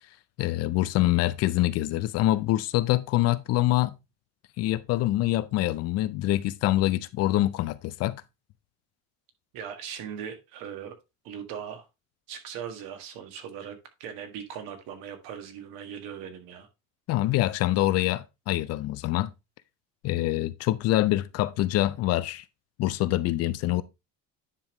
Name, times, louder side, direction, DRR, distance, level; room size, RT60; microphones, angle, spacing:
voice 1, 0.4-4.0 4.6-8.2 17.1-19.3 20.0-22.4 22.8-23.8, left 15 dB, 50° left, 0.5 m, -25 dB
voice 2, 9.5-11.0 11.2-11.9 12.3-16.7, right 8 dB, 80° right, 1.8 m, -39 dB
9.7 x 5.2 x 3.1 m
cardioid pair, 165°, 34 cm